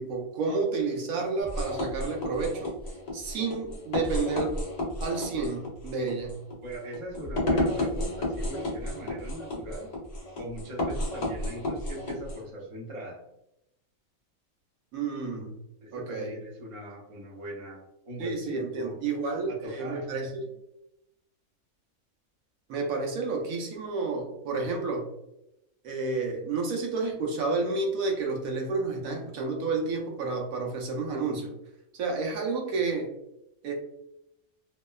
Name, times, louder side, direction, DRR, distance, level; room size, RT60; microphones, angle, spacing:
voice 1, 0.0-2.7 3.1-4.6 5.0-6.4 14.9-15.6 15.9-16.4 18.2-20.5 22.7-25.1 25.8-31.5 31.9-33.1 33.6-33.7, right 4 dB, 75° right, 1 dB, 1.0 m, -30 dB
sound 1, 1.4-12.4, left 1 dB, 65° left, 0.4 m, -32 dB
voice 2, 6.6-9.9 10.4-13.2 15.8-19.0 19.5-20.1 32.7-32.9, equal, 40° right, -3 dB, 0.5 m, -40 dB
2.8 x 2.1 x 2.2 m, 0.84 s
omnidirectional pair, 1.5 m